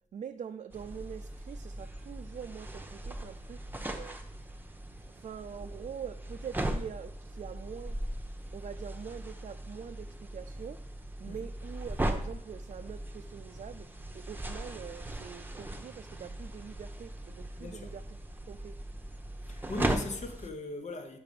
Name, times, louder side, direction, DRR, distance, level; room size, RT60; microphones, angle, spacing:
voice 1, 0.1-4.2 5.1-8.0 8.5-10.8 11.2-18.2 18.5-18.8, right 7 dB, 60° right, 0.4 m, -44 dB
sound 1, 0.7-20.5, right 1 dB, 15° right, 0.9 m, -39 dB
voice 2, 17.6-17.9 19.4-21.2, left 2 dB, 60° left, 1.2 m, -39 dB
6.7 x 5.8 x 5.3 m
cardioid pair, 80°, 13 cm